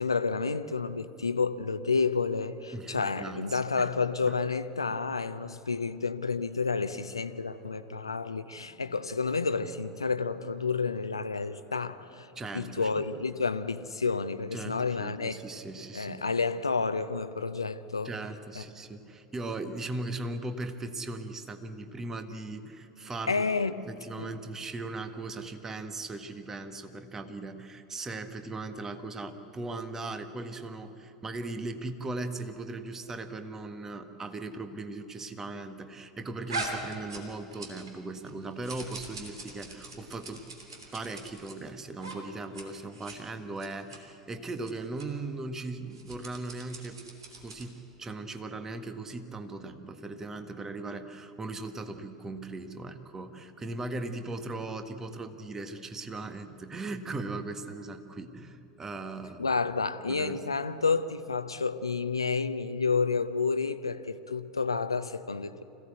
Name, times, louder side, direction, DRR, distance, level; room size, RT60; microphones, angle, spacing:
voice 1, 0.0-12.3 12.5-15.4 15.9-18.1 18.5-18.6 23.3-23.8 24.2-24.3 59.4-65.6, left 4 dB, 80° left, 0.7 m, -30 dB
voice 2, 2.7-3.9 4.3-4.4 5.1-5.2 12.3-13.0 14.5-16.2 18.0-23.4 23.9-40.5 40.9-47.0 47.4-59.5 60.1-60.6, right 2 dB, 20° right, 1.6 m, -38 dB
sound 1, 6.3-13.7, left 1 dB, 85° right, 7.8 m, -61 dB
sound 2, 36.5-38.0 38.2-41.5 42.0-42.2 42.4-42.6 42.9-43.2 43.6-44.0 44.6-44.7 45.0-45.1 45.9-47.8, right 2 dB, 70° right, 3.1 m, -41 dB
26.0 x 16.5 x 8.2 m
figure-of-eight pair, 80°, 3 cm